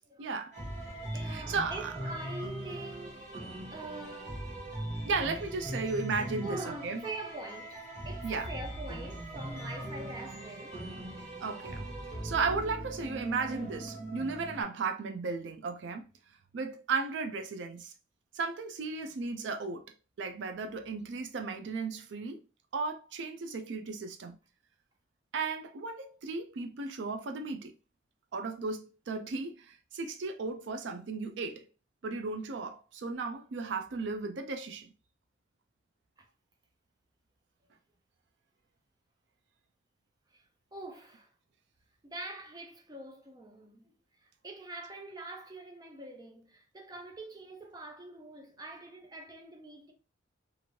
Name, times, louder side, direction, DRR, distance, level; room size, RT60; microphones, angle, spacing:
voice 1, 0.2-0.5 1.2-1.9 5.0-7.0 8.2-8.5 11.4-11.9 12.2-16.0 16.5-17.9 18.3-19.9 20.2-22.4 22.7-24.4 25.3-27.7 28.3-31.6 32.0-34.9, right 4 dB, 70° right, 0.4 m, -35 dB
sound 1, 0.5-14.6, right 1 dB, 40° right, 1.1 m, -40 dB
voice 2, 0.8-4.5 6.4-11.0 36.2-36.3 40.3-40.4 40.7-41.3 42.0-49.9, right 2 dB, 20° right, 0.5 m, -44 dB
3.0 x 2.5 x 2.7 m
head